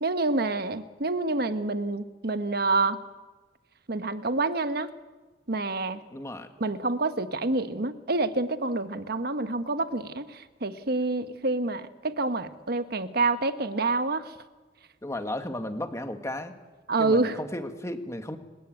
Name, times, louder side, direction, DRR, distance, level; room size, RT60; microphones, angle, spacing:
voice 1, 0.0-3.0 3.9-4.9 5.5-6.0 6.6-14.3 16.9-17.4, right 3 dB, 55° right, 10 dB, 1.3 m, -27 dB
voice 2, 6.1-6.5 15.0-16.5 17.0-18.4, left 1 dB, 15° left, 7 dB, 1.7 m, -34 dB
30.0 x 14.0 x 9.2 m, 1.2 s
head